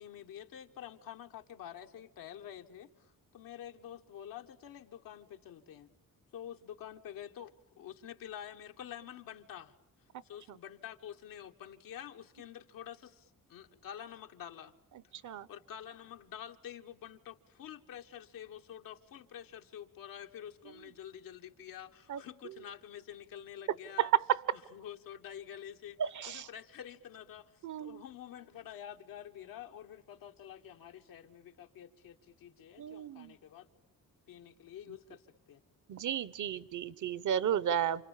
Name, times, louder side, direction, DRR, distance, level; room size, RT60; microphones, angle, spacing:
voice 1, 0.0-5.9 6.3-9.7 10.2-14.7 15.2-24.1 24.7-26.0 26.3-33.7 34.3-35.2 35.5-35.6, left 10 dB, 90° left, 4 dB, 1.6 m, -48 dB
voice 2, 24.0-24.4 26.0-26.5 27.6-28.0 32.8-33.4 35.9-38.0, right 10 dB, 65° right, 17 dB, 1.0 m, -32 dB
29.0 x 27.0 x 7.4 m, 0.78 s
cardioid pair, 115°, 33 cm